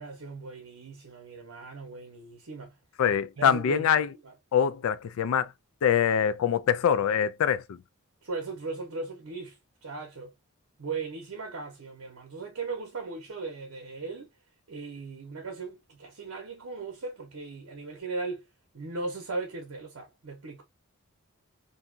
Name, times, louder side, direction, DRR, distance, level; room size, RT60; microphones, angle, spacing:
voice 1, 0.0-2.8 3.4-3.9 4.2-4.3 8.2-10.3 10.8-14.3 14.7-18.5 18.7-20.6, right 3 dB, 75° right, 0.8 m, -38 dB
voice 2, 3.0-4.1 4.5-5.5 5.8-7.8, left 8 dB, 75° left, 0.3 m, -24 dB
2.7 x 2.3 x 2.4 m
head